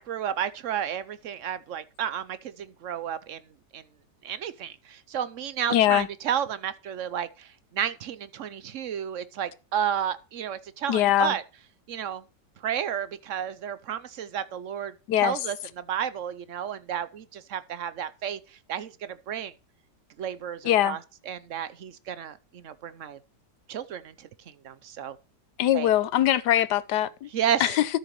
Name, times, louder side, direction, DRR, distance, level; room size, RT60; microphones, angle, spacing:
voice 1, 0.0-3.4 3.7-3.8 4.2-7.5 7.7-11.4 11.9-12.2 12.6-14.9 15.2-18.4 18.7-19.5 20.2-21.0 21.3-23.2 23.7-24.3 24.6-25.2 25.7-25.9 27.3-27.7, right 9 dB, 60° right, 0.9 m, -32 dB
voice 2, 5.7-6.1 10.9-11.4 15.1-15.4 20.6-21.0 25.6-27.3 27.6-27.9, left 12 dB, 75° left, 1.2 m, -22 dB
13.0 x 6.8 x 3.1 m
omnidirectional pair, 1.9 m